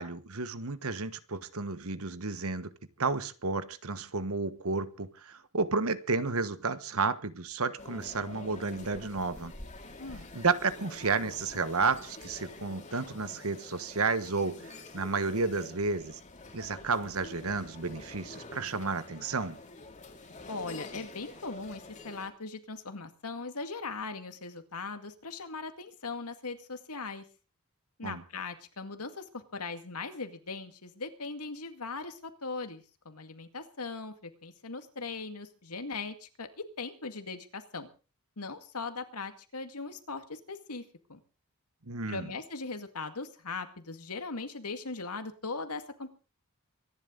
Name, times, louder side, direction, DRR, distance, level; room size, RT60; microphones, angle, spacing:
voice 1, 0.0-2.7 3.0-9.5 10.3-16.2 16.5-19.6 28.0-28.2 41.9-42.3, right 4 dB, 70° right, 1.3 m, -32 dB
sound 1, 7.8-22.3, left 2 dB, 35° left, 2.7 m, -47 dB
voice 2, 10.0-10.3 20.5-27.2 28.0-37.9 38.4-40.8 41.1-41.2 42.1-46.1, left 4 dB, 85° left, 2.1 m, -39 dB
24.5 x 11.0 x 3.9 m
head